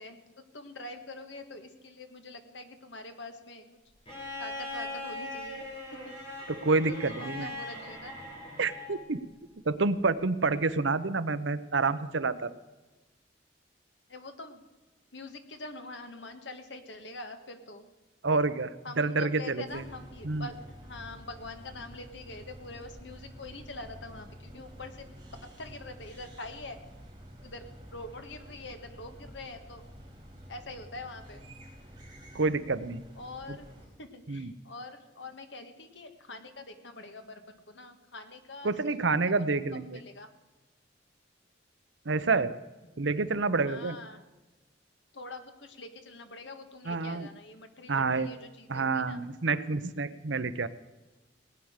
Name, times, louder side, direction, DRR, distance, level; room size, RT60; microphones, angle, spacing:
voice 1, 0.0-3.8 4.4-6.1 7.2-8.2 14.1-14.6 15.1-17.9 18.8-25.1 25.6-26.8 27.4-27.7 27.9-29.8 30.5-31.4 33.2-33.7 34.0-38.7 39.2-39.3 39.8-40.3 43.7-44.2 45.1-49.2, left 2 dB, 70° left, 7 dB, 1.8 m, -44 dB
Bowed string instrument, 4.1-9.1 10.6-10.7, left 2 dB, 30° left, 5.7 m, -40 dB
voice 2, 6.5-7.5 8.6-9.2 9.6-12.6 18.2-19.8 20.2-20.5 32.3-33.0 33.5-33.6 34.3-34.5 38.6-40.0 42.0-42.5 43.0-44.0 46.8-47.3 47.9-48.3 48.7-50.7, right 3 dB, 80° right, 13 dB, 0.8 m, -28 dB
sound 1, 19.7-33.9, equal, 20° right, 5.2 m, -49 dB
18.5 x 9.6 x 6.6 m, 1.1 s
head